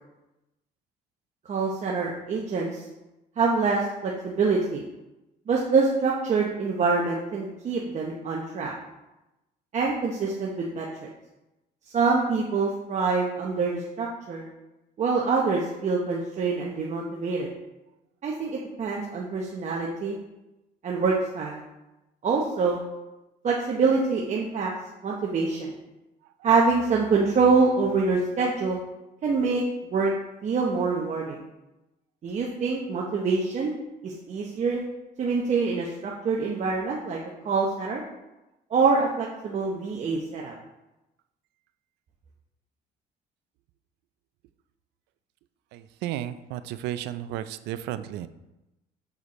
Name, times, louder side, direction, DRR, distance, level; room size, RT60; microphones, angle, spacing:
voice 1, 1.5-2.8 3.4-4.9 5.5-8.7 9.7-10.9 11.9-14.5 15.0-17.5 18.2-20.2 20.8-21.6 22.2-22.8 23.4-24.7 25.0-25.7 26.4-28.8 29.2-29.6 29.9-30.1 30.4-31.4 32.2-33.7 34.0-34.8 35.2-37.2 37.4-38.0 38.7-40.5, right 4 dB, 45° right, -2 dB, 0.9 m, -25 dB
voice 2, 45.7-48.3, right 12 dB, 85° right, 13 dB, 0.4 m, -33 dB
6.6 x 4.9 x 4.1 m, 0.97 s
cardioid pair, 110°, 17 cm